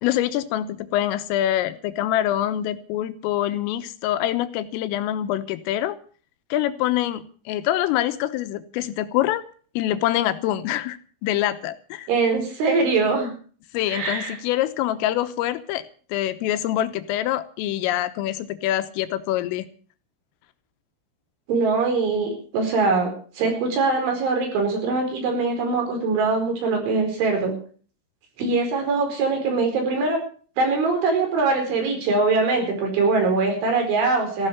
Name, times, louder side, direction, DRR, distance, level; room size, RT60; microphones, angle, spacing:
voice 1, 0.0-6.0 6.5-9.4 9.8-12.1 13.7-15.8 16.1-19.7, left 13 dB, 90° left, 11 dB, 3.6 m, -25 dB
voice 2, 12.1-13.3 13.9-14.4 21.5-27.6 28.4-30.2 30.6-34.5, right 3 dB, 70° right, 3 dB, 7.0 m, -22 dB
15.0 x 12.5 x 6.6 m, 0.43 s
omnidirectional pair, 5.8 m